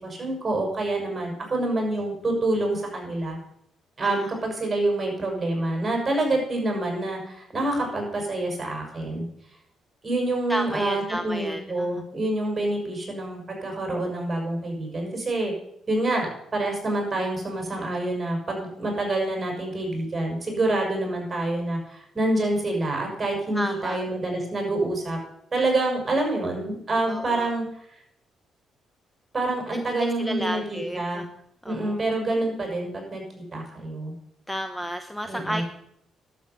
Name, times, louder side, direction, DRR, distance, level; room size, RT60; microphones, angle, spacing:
voice 1, 0.0-3.4 4.0-9.2 10.0-15.5 15.9-25.2 25.5-27.6 29.3-31.2 31.7-33.2 33.5-34.1 35.2-35.6, right 2 dB, 25° right, 1 dB, 6.2 m, -27 dB
voice 2, 4.0-4.3 10.5-11.9 23.5-24.0 27.1-27.5 29.7-31.3 31.6-32.0 34.5-35.6, equal, 5° left, 7 dB, 0.9 m, -32 dB
11.5 x 7.5 x 8.2 m, 0.72 s
cardioid pair, 90°, 0 cm